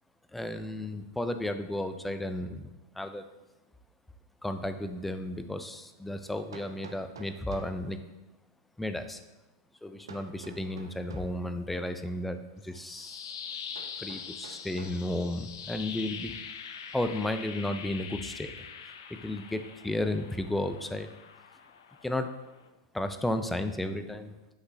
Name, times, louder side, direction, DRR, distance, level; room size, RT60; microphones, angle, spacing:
voice 1, 0.3-2.7 2.9-3.3 4.4-8.0 8.8-9.2 9.8-13.3 14.0-16.4 16.9-18.6 19.1-21.1 22.0-22.3 22.9-24.4, left 1 dB, 5° left, 8 dB, 0.5 m, -33 dB
Hammer, 6.5-7.8 10.1-11.4 13.7-15.0, right 4 dB, 85° right, 0.8 m, -49 dB
sound 1, 12.6-22.7, left 7 dB, 70° left, 0.7 m, -43 dB
8.2 x 5.9 x 2.7 m, 1.0 s
hypercardioid pair, 105°, 2 cm